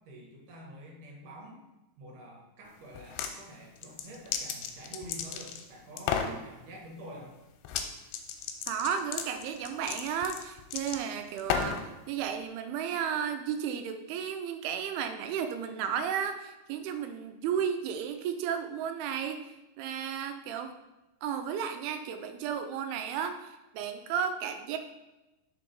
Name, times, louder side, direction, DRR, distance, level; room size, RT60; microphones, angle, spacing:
voice 1, 0.1-1.6 2.0-7.4, right 1 dB, 65° right, -1 dB, 2.4 m, -47 dB
sound 1, 2.9-3.3 3.8-5.6 6.0-6.4 7.6-7.9 8.1-11.9, left 7 dB, 90° left, 2.6 m, -33 dB
voice 2, 8.7-19.4 19.8-20.7 21.2-24.8, right 8 dB, 85° right, 7 dB, 2.5 m, -33 dB
5.2 x 4.6 x 5.0 m, 1.0 s
omnidirectional pair, 4.5 m